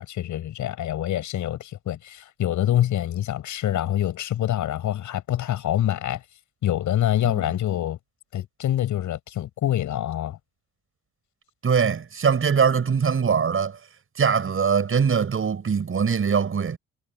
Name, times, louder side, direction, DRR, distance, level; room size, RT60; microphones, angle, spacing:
voice 1, 0.0-6.2 6.6-8.0 8.3-10.4, left 12 dB, 75° left, 6.8 m, -25 dB
voice 2, 11.6-13.8 14.2-16.8, right 6 dB, 45° right, 6.9 m, -22 dB
cardioid pair, 90°, 30 cm